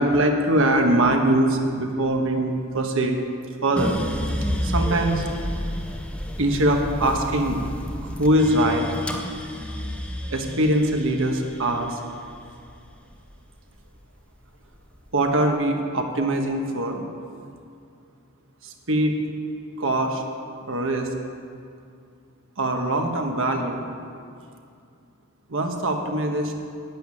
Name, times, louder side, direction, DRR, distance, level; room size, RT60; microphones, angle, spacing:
voice 1, 0.0-3.2 3.6-4.0 4.6-5.3 6.4-7.6 8.0-8.9 10.3-12.0 15.1-17.1 18.6-19.2 19.8-20.2 20.7-21.1 22.6-23.9 25.5-26.5, right 1 dB, 60° right, 3 dB, 1.3 m, -22 dB
sound 1, 3.8-14.0 14.4-15.2, equal, 5° left, 0.8 m, -31 dB
11.5 x 7.3 x 9.7 m, 2.4 s
head